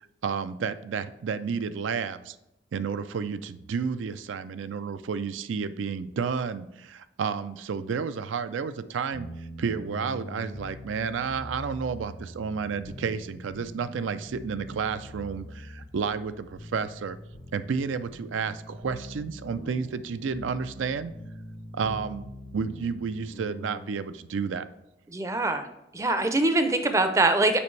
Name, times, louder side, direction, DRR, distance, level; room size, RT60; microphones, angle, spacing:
voice 1, 0.2-2.3 2.7-9.3 9.6-17.2 17.5-21.1 21.7-24.6, right 6 dB, 85° right, 13 dB, 0.4 m, -31 dB
sound 1, 9.1-23.9, left 1 dB, 70° left, 0.9 m, -43 dB
voice 2, 25.1-25.7 25.9-27.6, right 2 dB, 15° right, 8 dB, 0.4 m, -23 dB
7.0 x 5.1 x 3.2 m, 0.89 s
head